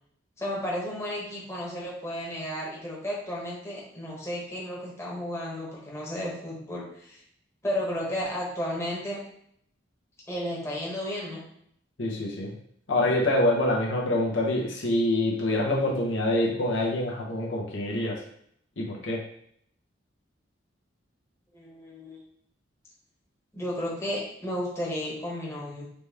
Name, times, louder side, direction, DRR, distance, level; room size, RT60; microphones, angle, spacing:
voice 1, 0.4-7.2 7.6-9.2 10.3-11.4 21.5-22.2 23.5-25.9, equal, 15° left, -5 dB, 1.1 m, -33 dB
voice 2, 12.0-12.5 12.9-18.2 18.8-19.2, left 1 dB, 75° left, -1 dB, 1.0 m, -26 dB
4.1 x 3.4 x 3.5 m, 0.68 s
head